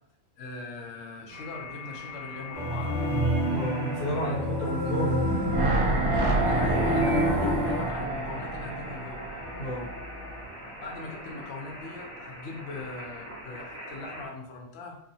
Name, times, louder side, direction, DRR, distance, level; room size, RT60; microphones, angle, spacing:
voice 1, 0.4-3.2 4.2-4.3 4.7-4.9 6.1-9.2 10.8-15.0, left 3 dB, 60° left, 0 dB, 0.7 m, -39 dB
sound 1, 1.3-14.3, equal, 20° right, 1.3 m, -42 dB
sound 2, 2.5-7.8, equal, 40° right, 0.5 m, -28 dB
voice 2, 3.4-5.3 9.5-9.9, equal, 80° left, -5 dB, 1.2 m, -32 dB
sound 3, 5.2-10.4 10.7-10.8, right 2 dB, 70° right, 1.0 m, -28 dB
2.7 x 2.4 x 2.6 m, 0.71 s
omnidirectional pair, 1.6 m